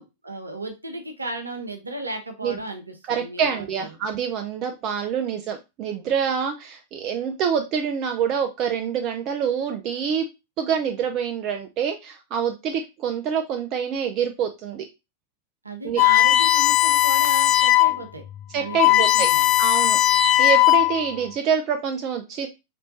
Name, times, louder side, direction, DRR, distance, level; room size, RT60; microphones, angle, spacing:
voice 1, 0.0-3.9 15.6-18.2 18.5-19.5, right 2 dB, 80° right, 5 dB, 0.7 m, -34 dB
voice 2, 3.1-10.2 10.6-14.8 15.8-16.0 18.5-19.3 19.6-22.5, right 7 dB, 40° right, 5 dB, 0.4 m, -26 dB
sound 1, 16.0-18.0 18.4-18.5 18.7-21.1, left 14 dB, 35° left, 0.4 m, -18 dB
4.3 x 3.1 x 2.6 m, 0.25 s
figure-of-eight pair, 90°, 0 cm